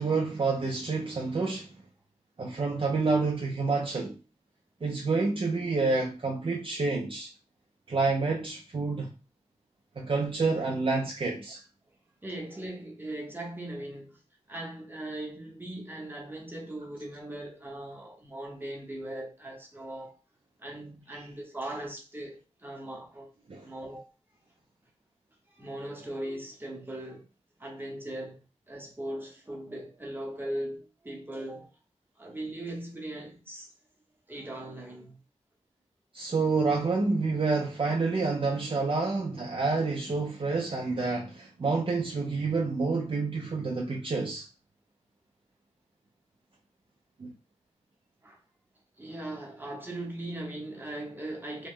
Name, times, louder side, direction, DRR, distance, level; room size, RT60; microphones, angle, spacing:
voice 1, 0.0-1.7 2.4-4.2 4.8-7.3 7.9-9.1 10.0-11.6 23.5-23.6 36.1-44.5 47.2-47.3, right 3 dB, 45° right, 0.5 m, -28 dB
voice 2, 12.2-14.2 14.5-20.2 20.6-23.3 23.6-24.1 25.5-27.3 27.6-31.7 32.2-33.7 34.3-35.2 48.2-48.4 49.0-51.7, right 1 dB, 15° right, 0.9 m, -39 dB
3.0 x 2.1 x 3.6 m
wide cardioid pair, 105°, 13 cm